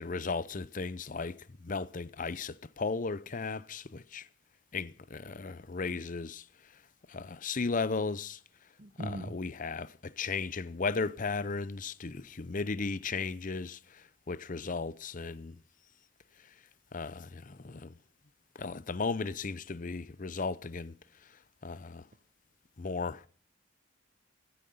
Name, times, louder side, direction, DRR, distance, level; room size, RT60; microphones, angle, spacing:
voice 1, 0.0-4.3 4.7-6.4 7.1-8.4 9.0-15.6 16.9-18.0 18.5-20.9 21.6-22.0 22.8-23.2, left 4 dB, 40° left, 0.7 m, -35 dB
voice 2, 8.8-9.3, right 1 dB, 40° right, 1.0 m, -38 dB
16.0 x 14.0 x 5.6 m
head